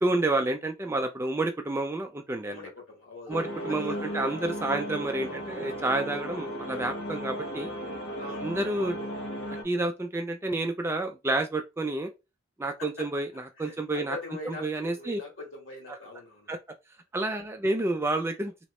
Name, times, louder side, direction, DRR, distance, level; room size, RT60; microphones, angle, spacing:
voice 1, 0.0-2.6 3.3-7.7 8.4-9.0 9.6-12.1 12.6-14.2 14.5-15.2 15.9-16.0 16.5-16.6 17.1-18.5, right 2 dB, 10° right, 0.3 m, -29 dB
voice 2, 2.4-3.4 3.7-4.3 4.6-4.8 8.2-8.6 12.8-13.1 13.6-16.5, left 2 dB, 65° left, 1.6 m, -42 dB
sound 1, 3.3-9.6, equal, 90° left, 1.1 m, -35 dB
3.1 x 2.8 x 3.0 m
head